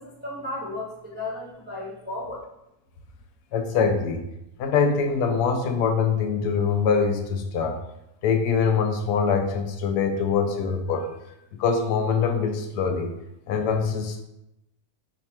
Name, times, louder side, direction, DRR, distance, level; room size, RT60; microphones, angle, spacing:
voice 1, 0.0-2.4, left 2 dB, 10° right, -5 dB, 0.5 m, -34 dB
voice 2, 3.5-4.3 4.6-7.8 8.2-11.1 11.6-13.1 13.5-14.2, left 5 dB, 85° left, 4 dB, 1.2 m, -23 dB
5.0 x 2.2 x 4.3 m, 0.85 s
omnidirectional pair, 1.7 m